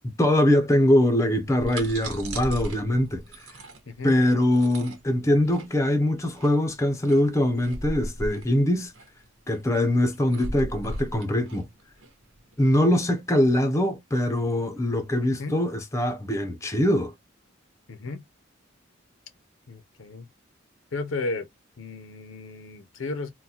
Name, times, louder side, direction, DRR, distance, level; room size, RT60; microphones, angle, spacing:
voice 1, 0.2-3.5 4.0-8.9 9.5-11.7 12.6-17.1, left 1 dB, 15° left, 0.6 m, -23 dB
sound 1, 1.4-12.7, right 1 dB, 90° right, 1.1 m, -37 dB
voice 2, 3.9-4.2 15.2-15.6 17.9-18.2 19.7-20.3 20.9-21.5 21.8-23.3, left 3 dB, 75° left, 0.6 m, -34 dB
3.7 x 2.2 x 2.8 m
head